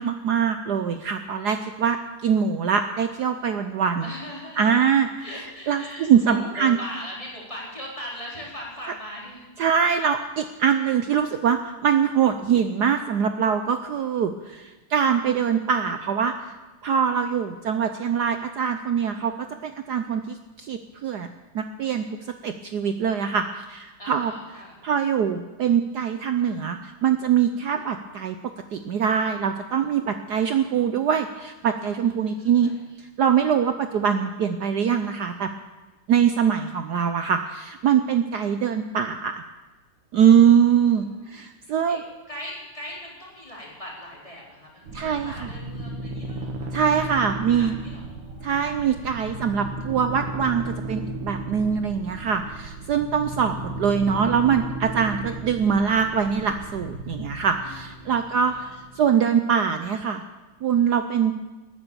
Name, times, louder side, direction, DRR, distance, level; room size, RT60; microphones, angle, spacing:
voice 1, 0.0-4.1 4.6-5.1 5.7-6.8 9.6-16.6 16.8-19.3 19.6-21.3 21.5-22.0 22.4-24.3 24.8-28.4 28.7-32.7 33.2-35.5 36.1-39.4 40.1-42.0 44.9-45.5 46.7-47.7 48.4-58.7 59.0-60.2 60.6-61.3, right 7 dB, 70° right, 8 dB, 1.0 m, -23 dB
voice 2, 4.0-4.9 5.2-9.5 24.0-24.8 32.1-32.8 41.1-41.4 41.9-42.0 42.3-46.9 47.2-48.9 57.6-58.7, equal, 15° left, -5 dB, 4.1 m, -40 dB
sound 1, 44.9-59.1, right 2 dB, 85° right, 2.3 m, -35 dB
19.5 x 10.0 x 7.0 m, 1.1 s
omnidirectional pair, 2.4 m